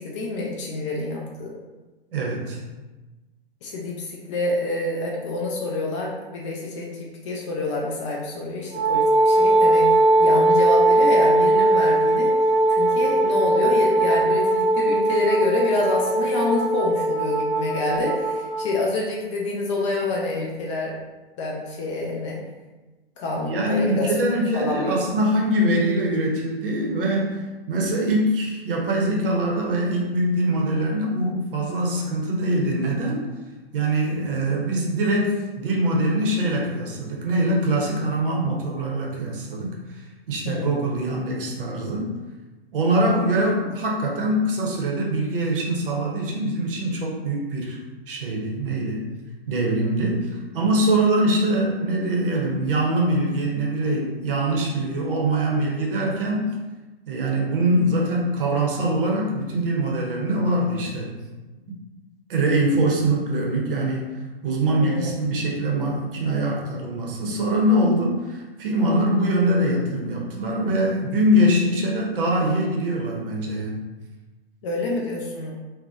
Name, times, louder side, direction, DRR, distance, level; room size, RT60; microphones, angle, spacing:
voice 1, 0.0-1.5 3.6-12.3 12.7-20.9 21.4-22.4 23.2-24.1 24.5-25.0 40.4-40.8 64.8-65.1 74.6-75.5, left 2 dB, 30° left, -2 dB, 0.4 m, -27 dB
voice 2, 2.1-2.6 23.3-33.3 33.7-40.0 40.3-42.1 42.7-47.8 48.1-49.0 49.5-56.6 57.1-61.2 62.3-73.8, right 1 dB, 60° right, -2 dB, 0.7 m, -23 dB
Wind instrument woodwind instrument, 8.7-18.7, right 2 dB, 55° left, 0.9 m, -19 dB
2.6 x 2.1 x 2.3 m, 1.2 s
figure-of-eight pair, 110°, 31 cm